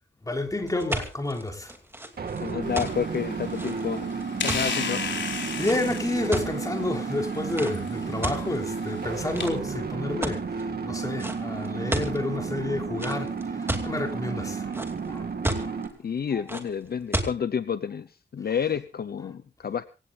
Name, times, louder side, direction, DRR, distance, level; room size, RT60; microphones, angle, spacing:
voice 1, 0.2-1.7 5.6-14.8 15.1-15.3 15.6-15.8 16.3-16.4, left 2 dB, 20° left, 3.5 m, -30 dB
sound 1, 0.7-6.8 7.5-7.7 8.2-8.9 9.3-9.8 10.2-10.6 11.2-11.4 11.6-12.2 13.0-13.9 14.4-15.1 15.4-15.9 16.5-16.6 17.1-17.3, right 1 dB, 10° right, 2.6 m, -31 dB
sound 2, 2.2-15.9, right 5 dB, 55° right, 2.6 m, -32 dB
voice 2, 2.4-4.1 4.4-5.1 16.0-18.1 18.3-19.8, left 7 dB, 60° left, 0.7 m, -30 dB
sound 3, 2.6-9.5, left 5 dB, 80° left, 4.3 m, -36 dB
26.0 x 17.0 x 2.5 m
wide cardioid pair, 125°, 19 cm